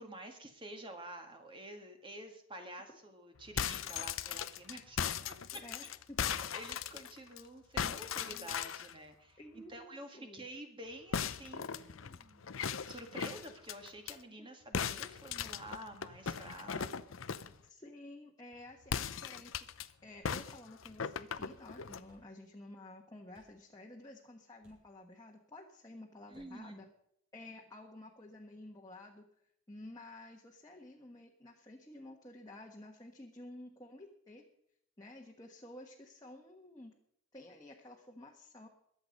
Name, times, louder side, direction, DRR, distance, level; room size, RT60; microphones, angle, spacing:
voice 1, 0.0-5.0 6.2-12.5 12.8-17.6 26.3-26.8, right 1 dB, 25° right, 4 dB, 1.8 m, -49 dB
sound 1, 3.4-7.4 7.8-8.9 11.1-14.2 14.7-17.6 18.8-19.9 20.2-22.1, left 7 dB, 85° left, 0.7 m, -38 dB
voice 2, 5.5-6.6 9.4-10.4 14.4-14.5 17.6-26.9 27.3-29.2 29.7-34.4 35.0-36.9 37.3-38.7, left 1 dB, 20° left, -1 dB, 1.4 m, -52 dB
sound 2, 21.3-21.5 22.0-22.3 23.3-23.6 24.6-24.9 26.3-26.5, equal, 70° right, 6.7 m, -66 dB
22.0 x 8.1 x 5.3 m, 0.74 s
head